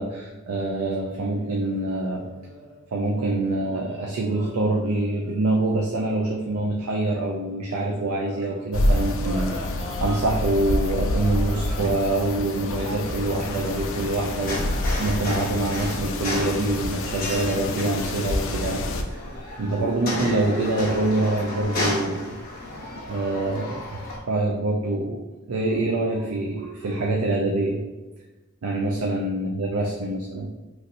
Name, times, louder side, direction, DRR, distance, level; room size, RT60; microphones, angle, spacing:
voice 1, 0.0-2.3 2.9-19.2 19.6-22.3 23.1-24.0 24.3-27.8 28.6-30.5, right 2 dB, 85° right, 0 dB, 0.4 m, -25 dB
sound 1, 1.1-2.8 3.4-8.6 9.2-16.0, right 1 dB, 55° right, 0.9 m, -43 dB
sound 2, 8.7-19.0, left 1 dB, 65° left, 0.4 m, -28 dB
sound 3, 12.7-24.2, left 2 dB, 45° left, 0.8 m, -33 dB
3.1 x 2.8 x 2.6 m, 1.1 s
head